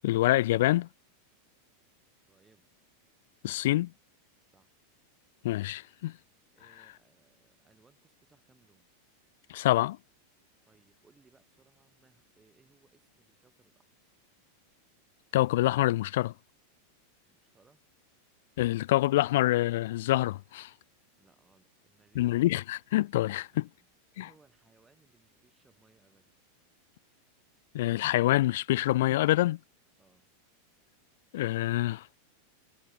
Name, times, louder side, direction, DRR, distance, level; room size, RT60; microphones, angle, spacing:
voice 1, 0.0-0.9 3.4-3.9 5.4-6.1 9.5-10.0 15.3-16.3 18.6-20.7 22.2-23.7 24.2-24.3 27.7-29.6 31.3-32.1, left 16 dB, 65° left, 0.3 m, -26 dB
voice 2, 2.3-2.7 4.4-4.8 6.5-8.9 10.6-13.9 17.3-17.8 21.2-22.3 23.5-26.3 30.0-30.3, right 4 dB, 15° right, 4.9 m, -66 dB
hypercardioid pair, 95°, 0 cm